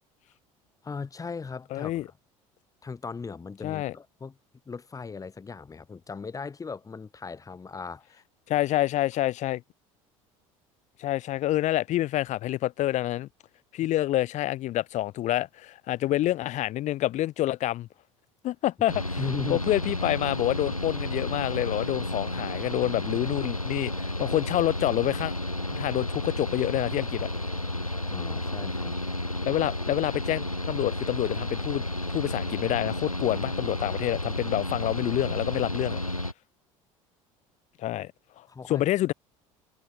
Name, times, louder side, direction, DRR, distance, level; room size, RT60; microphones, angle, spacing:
voice 1, 0.8-2.1 2.8-4.4 4.7-8.2 19.2-19.7 28.1-29.0 38.5-38.8, left 5 dB, 20° left, 2.0 m, -38 dB
voice 2, 1.7-2.1 3.6-3.9 8.5-9.6 11.0-13.3 13.7-17.9 18.4-19.2 19.5-25.3 25.7-27.3 29.4-36.0 37.8-38.1 38.4-39.1, left 14 dB, 45° left, 1.4 m, -27 dB
Mechanical fan, 18.9-36.3, left 1 dB, 90° left, 1.4 m, -32 dB
figure-of-eight pair, 65°, 17 cm